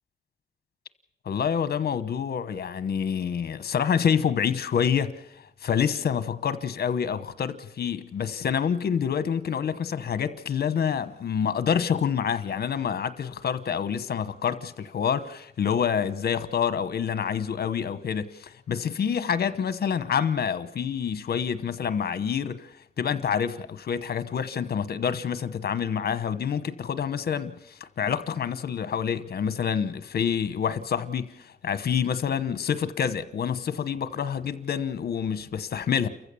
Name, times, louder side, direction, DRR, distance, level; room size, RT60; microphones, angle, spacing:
voice 1, 1.3-5.1 5.6-22.7 23.0-36.1, left 7 dB, 60° left, 1.1 m, -27 dB
29.5 x 15.0 x 7.0 m
wide cardioid pair, 160°, 18 cm